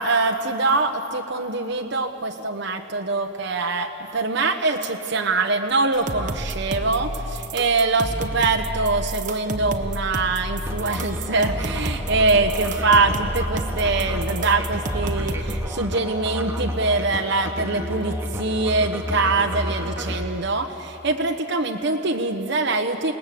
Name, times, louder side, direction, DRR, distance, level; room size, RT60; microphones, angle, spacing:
voice 1, 0.0-23.1, right 3 dB, 65° right, 3 dB, 1.1 m, -23 dB
sound 1, 5.9-15.7, right 1 dB, 40° right, 1.2 m, -30 dB
Musical instrument, 10.7-20.3, equal, 15° right, 1.8 m, -31 dB
28.5 x 19.0 x 7.8 m, 2.9 s
head